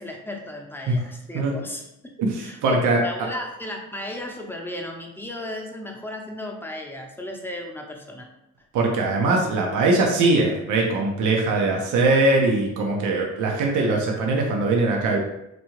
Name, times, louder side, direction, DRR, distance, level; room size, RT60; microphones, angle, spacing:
voice 1, 0.0-1.8 2.4-8.3, left 1 dB, 5° left, 1 dB, 0.7 m, -35 dB
voice 2, 2.2-3.0 8.7-15.2, right 2 dB, 85° right, 0 dB, 0.8 m, -21 dB
4.1 x 2.3 x 3.1 m, 0.86 s
cardioid pair, 90°, 30 cm